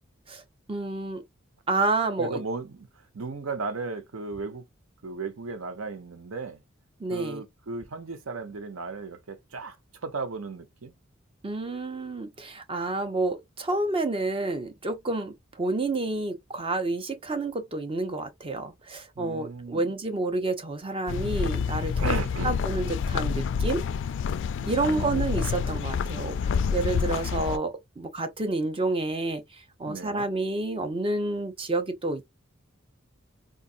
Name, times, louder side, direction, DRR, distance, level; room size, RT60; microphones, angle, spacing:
voice 1, 0.7-1.2 1.7-2.4 7.0-7.4 11.4-22.1 22.4-23.8 24.7-32.3, right 2 dB, 25° right, 0.6 m, -29 dB
voice 2, 2.2-2.9 3.1-4.6 5.0-6.6 7.1-9.8 10.0-10.9 19.2-19.9 22.0-22.6 24.6-25.2 29.9-30.3, right 4 dB, 75° right, 0.8 m, -35 dB
sound 1, 21.1-27.6, left 6 dB, 60° left, 0.3 m, -28 dB
4.0 x 2.4 x 2.4 m
head